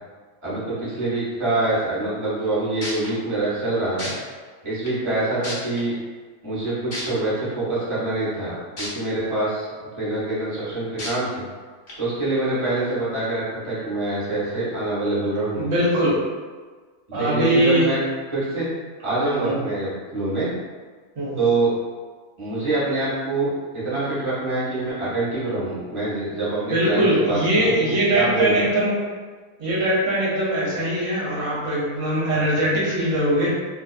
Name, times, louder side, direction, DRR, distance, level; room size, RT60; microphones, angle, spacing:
voice 1, 0.4-4.1 4.6-5.9 6.4-9.7 10.0-11.4 12.0-15.7 17.1-18.0 18.3-18.7 19.0-20.5 21.4-21.7 22.4-28.7 29.6-29.7, right 2 dB, 25° right, -10 dB, 0.7 m, -25 dB
sound 1, 2.4-2.5 2.8-3.1 4.0-4.1 4.9-5.0 5.4-5.8 6.9-7.0 8.8-8.9 9.4-9.5 11.0-11.1 11.9-12.0, left 1 dB, 40° left, 0.8 m, -31 dB
voice 2, 15.6-16.1 17.1-17.9 19.4-19.6 21.2-21.4 26.7-28.9 29.6-33.5, right 1 dB, 55° right, -7 dB, 0.3 m, -21 dB
2.4 x 2.4 x 2.3 m, 1.5 s
omnidirectional pair, 1.5 m